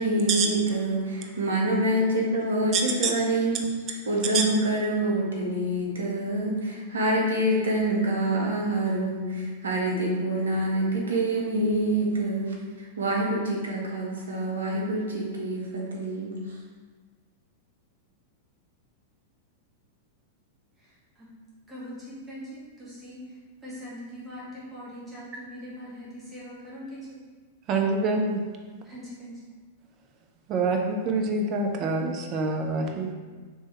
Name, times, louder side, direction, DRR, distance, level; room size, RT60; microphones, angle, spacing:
voice 1, 0.0-3.6 4.1-12.5 13.0-16.4, right 1 dB, 75° right, -2 dB, 0.9 m, -26 dB
voice 2, 2.7-3.1 4.3-4.4 27.7-28.4 30.5-33.1, right 3 dB, 35° right, 2 dB, 0.6 m, -26 dB
voice 3, 21.7-23.2 23.6-27.2 28.8-29.4, equal, 15° right, -8 dB, 1.2 m, -41 dB
3.4 x 3.2 x 4.1 m, 1.4 s
figure-of-eight pair, 95°, 0 cm